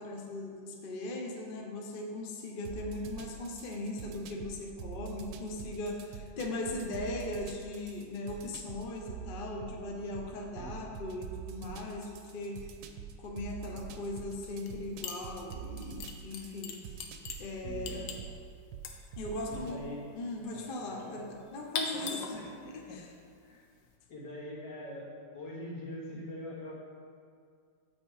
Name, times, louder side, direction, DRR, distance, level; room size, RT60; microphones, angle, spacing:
voice 1, 0.0-12.7 13.2-17.0 17.4-18.1 19.2-19.9 20.1-23.1, left 2 dB, 55° left, 1 dB, 0.6 m, -39 dB
sound 1, 2.6-19.8, right 8 dB, 75° right, 1.2 m, -46 dB
sound 2, 14.6-14.8 15.0-23.9, left 4 dB, 85° left, 1.5 m, -42 dB
voice 2, 17.6-18.1 19.5-20.1 20.5-20.6 20.9-21.3 21.9-22.5 22.8-23.0 23.4-23.7 24.1-26.8, left 1 dB, 70° left, -4 dB, 2.1 m, -43 dB
8.0 x 5.3 x 4.8 m, 2.2 s
omnidirectional pair, 2.0 m